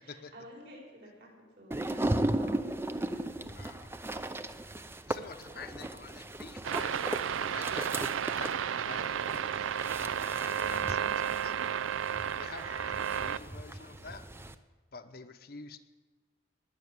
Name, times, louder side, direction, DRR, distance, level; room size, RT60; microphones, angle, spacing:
voice 1, 0.0-3.5 10.6-11.1, equal, 55° right, -1 dB, 4.9 m, -52 dB
sound 1, 1.7-14.5, right 1 dB, 10° right, 0.5 m, -37 dB
voice 2, 3.6-3.9 5.1-11.0 11.3-14.3 14.9-15.8, left 4 dB, 50° left, 7 dB, 0.8 m, -49 dB
sound 2, 6.6-13.4, right 8 dB, 85° right, 0.4 m, -32 dB
19.0 x 6.5 x 9.6 m, 1.3 s
head